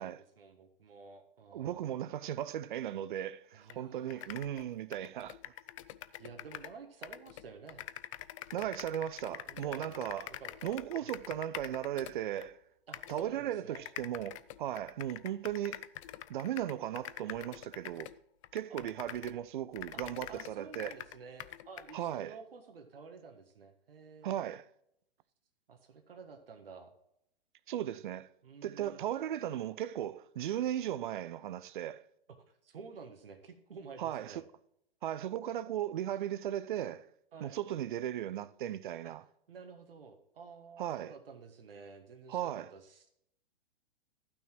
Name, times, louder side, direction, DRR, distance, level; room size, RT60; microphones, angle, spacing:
voice 1, 0.0-1.9 3.5-4.3 6.1-7.8 9.5-10.0 10.3-10.7 11.0-11.1 12.9-13.8 18.7-18.9 19.9-24.4 25.7-26.9 28.4-29.0 32.3-34.4 37.3-37.6 39.0-39.1 39.5-43.1, right 5 dB, 70° right, 1.5 m, -51 dB
voice 2, 1.5-5.4 8.5-10.3 10.6-12.6 13.1-15.9 16.3-18.1 18.5-20.9 21.9-22.3 24.2-24.7 27.7-28.3 28.6-32.0 34.0-34.4 35.0-37.1 37.4-39.2 40.8-41.1 42.3-42.7, right 11 dB, 55° right, 0.6 m, -37 dB
sound 1, 3.7-3.8 4.1-6.8 7.0-12.5 12.9-13.3 13.7-19.4 19.7-22.0, left 14 dB, 35° left, 0.4 m, -46 dB
12.0 x 6.0 x 4.6 m
figure-of-eight pair, 115°, 29 cm